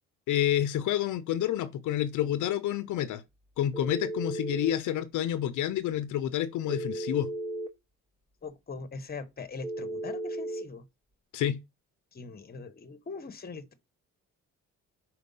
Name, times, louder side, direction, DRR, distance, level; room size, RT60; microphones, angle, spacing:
voice 1, 0.3-3.2 3.6-7.3 11.3-11.6, left 11 dB, 75° left, 0.6 m, -29 dB
Telephone, 3.7-4.8 6.7-7.7 9.6-10.7, right 1 dB, 15° right, 1.0 m, -35 dB
voice 2, 8.4-10.8 12.1-13.7, left 4 dB, 30° left, 1.1 m, -41 dB
5.2 x 4.5 x 5.4 m
cardioid pair, 90°, 30 cm